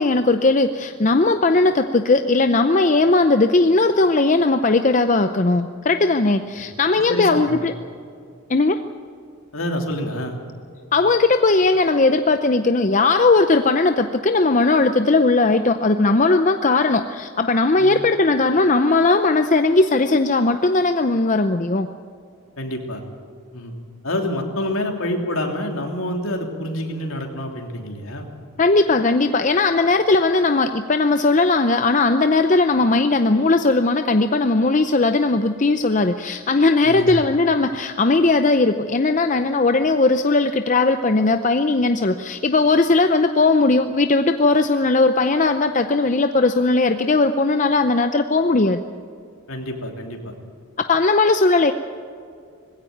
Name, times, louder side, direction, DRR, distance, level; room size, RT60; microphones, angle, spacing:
voice 1, 0.0-7.7 8.5-8.8 10.9-21.9 28.6-48.8 50.9-51.7, left 3 dB, 35° left, 8 dB, 0.6 m, -18 dB
voice 2, 6.9-7.7 9.5-10.4 17.8-18.0 22.6-23.0 23.5-23.7 24.0-28.3 36.8-37.1 49.5-50.3, left 1 dB, 70° left, 2 dB, 3.1 m, -27 dB
20.5 x 16.5 x 9.4 m, 2.3 s
head